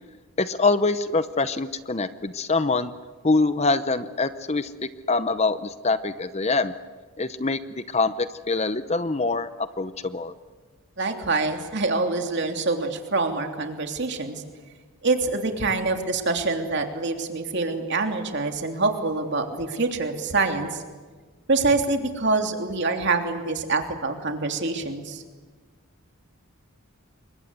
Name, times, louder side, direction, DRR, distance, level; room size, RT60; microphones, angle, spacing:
voice 1, 0.4-2.9 3.2-4.7 5.1-6.7 7.2-10.3, left 3 dB, 30° left, 12 dB, 0.8 m, -24 dB
voice 2, 11.0-14.4 15.0-20.8 21.5-25.2, right 3 dB, 50° right, 4 dB, 3.1 m, -25 dB
28.5 x 24.0 x 8.2 m, 1.4 s
head